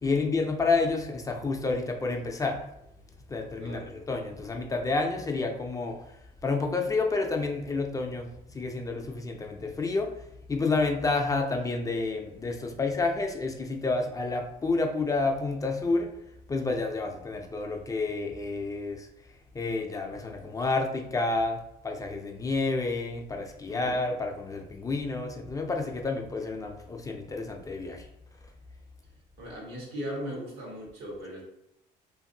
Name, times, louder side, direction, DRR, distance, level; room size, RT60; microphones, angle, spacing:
voice 1, 0.0-2.6 3.3-6.0 6.4-8.3 8.5-10.1 10.5-16.1 16.5-19.1 19.5-21.6 21.8-28.1, left 3 dB, 20° left, 3 dB, 0.4 m, -29 dB
voice 2, 3.6-3.9 23.7-23.9 29.4-31.4, equal, 85° right, -3 dB, 1.2 m, -38 dB
2.6 x 2.5 x 2.6 m, 0.80 s
cardioid pair, 110°, 17 cm